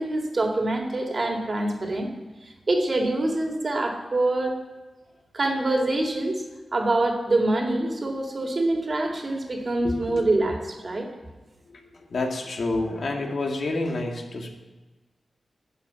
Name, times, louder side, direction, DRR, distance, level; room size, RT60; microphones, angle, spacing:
voice 1, 0.0-2.1 2.4-4.5 5.3-6.4 6.7-11.1, right 2 dB, 40° right, 2 dB, 2.2 m, -25 dB
voice 2, 9.8-10.3 11.7-14.5, left 2 dB, 65° left, 1 dB, 2.0 m, -29 dB
11.5 x 7.2 x 9.1 m, 1.2 s
wide cardioid pair, 100°, 0 cm